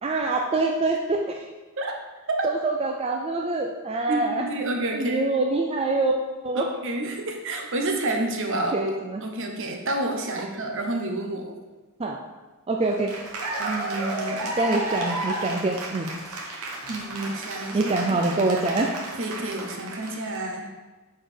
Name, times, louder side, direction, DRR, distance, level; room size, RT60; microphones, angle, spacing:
voice 1, 0.0-1.5 2.4-4.5 4.9-6.2 6.4-6.7 8.7-9.2 12.0-12.2 12.7-13.2 14.6-16.1 17.7-18.9, right 2 dB, 25° right, 1 dB, 0.4 m, -25 dB
voice 2, 4.1-5.3 6.5-8.7 9.2-11.6 13.6-14.5 16.9-17.8 18.1-18.2 19.2-20.7, right 2 dB, 55° right, 2 dB, 0.9 m, -29 dB
Cheering / Applause, 12.8-20.4, right 2 dB, 75° right, 1.1 m, -33 dB
6.8 x 4.7 x 4.4 m, 1.2 s
head